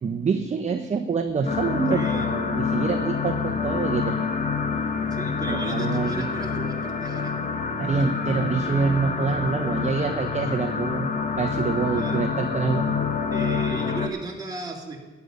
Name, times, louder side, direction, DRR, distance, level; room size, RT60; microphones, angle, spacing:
voice 1, 0.0-4.3 5.5-6.2 7.8-11.1 11.4-12.9, right 5 dB, 35° right, 5 dB, 0.9 m, -26 dB
sound 1, 1.5-14.1, left 5 dB, 40° left, 1.3 m, -27 dB
voice 2, 1.9-2.3 5.1-7.3 11.9-12.2 13.3-15.0, right 3 dB, 20° right, -1 dB, 2.9 m, -35 dB
13.5 x 9.5 x 5.4 m, 1.3 s
cardioid pair, 90°, 20 cm